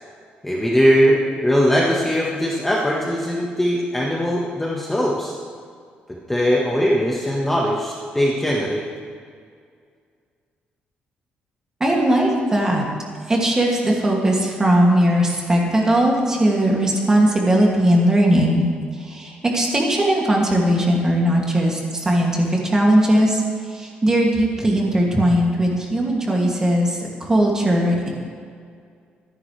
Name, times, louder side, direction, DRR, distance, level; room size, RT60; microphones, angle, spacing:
voice 1, 0.4-5.4 6.3-8.8, equal, 5° left, -4 dB, 1.4 m, -20 dB
voice 2, 11.8-12.8 13.3-18.7 19.1-23.4 23.7-28.1, right 1 dB, 20° right, -2 dB, 2.4 m, -18 dB
24.0 x 11.0 x 3.3 m, 2.2 s
cardioid pair, 160°, 3 cm